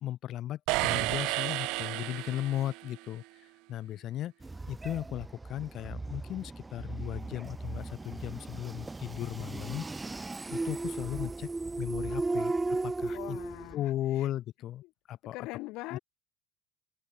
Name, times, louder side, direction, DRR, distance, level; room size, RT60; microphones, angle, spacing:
voice 1, 0.0-3.2 3.7-4.3 4.7-11.5 11.8-12.5 12.8-13.4 13.7-15.5 15.9-16.0, left 12 dB, 50° left, 2.4 m, -36 dB
sound 1, 0.7-2.9, right 24 dB, 75° right, 2.5 m, -31 dB
sound 2, 4.4-13.7, right 3 dB, 10° right, 2.7 m, -36 dB
voice 2, 13.1-13.9 14.2-14.3 14.8-14.9 15.3-16.0, left 22 dB, 70° left, 5.1 m, -41 dB
open air
cardioid pair, 135°, 0 cm